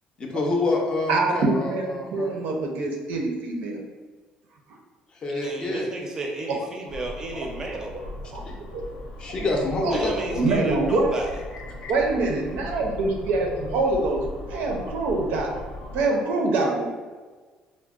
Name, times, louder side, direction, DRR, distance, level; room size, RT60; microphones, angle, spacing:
voice 1, 0.2-2.4 5.2-5.8 8.4-8.5 9.2-10.4 11.8-11.9, left 2 dB, 35° left, 0 dB, 0.4 m, -27 dB
voice 2, 1.1-3.8 8.3-8.4 8.7-8.8 9.8-11.1 11.9-14.2 14.5-15.5 15.9-16.9, right 3 dB, 85° right, 1 dB, 0.5 m, -25 dB
voice 3, 5.3-8.0 9.9-11.3, right 2 dB, 25° right, 1 dB, 0.4 m, -32 dB
sound 1, 6.9-16.1, left 1 dB, 90° left, 0.7 m, -38 dB
3.7 x 2.0 x 2.3 m, 1.4 s
cardioid pair, 150°, 3 cm